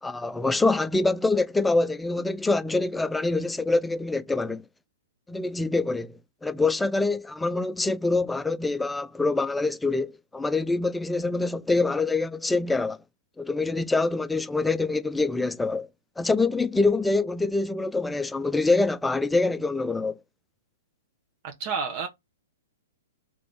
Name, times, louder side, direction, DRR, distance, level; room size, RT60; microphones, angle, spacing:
voice 1, 0.0-4.6 5.3-13.0 13.4-15.9 16.2-20.2, left 3 dB, 5° left, 0.4 m, -25 dB
voice 2, 21.4-22.1, right 5 dB, 45° right, 0.8 m, -30 dB
3.8 x 3.3 x 3.4 m
hypercardioid pair, 125°, 0 cm